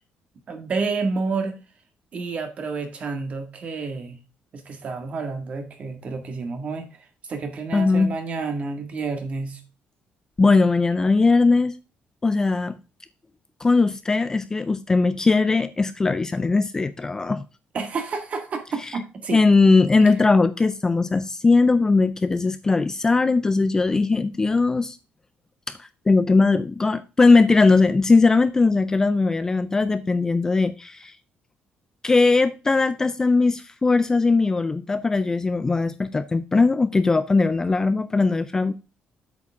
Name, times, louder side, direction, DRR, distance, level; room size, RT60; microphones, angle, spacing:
voice 1, 0.5-1.5 2.1-4.2 4.5-9.6 17.7-19.4 20.0-20.1, right 4 dB, 40° right, 1.8 m, -30 dB
voice 2, 7.7-8.1 10.4-11.8 12.2-12.7 13.6-17.4 18.9-19.0 19.3-25.0 25.7-31.1 32.0-38.7, left 3 dB, 15° left, 0.4 m, -19 dB
8.3 x 7.0 x 3.5 m
cardioid pair, 155°, 3 cm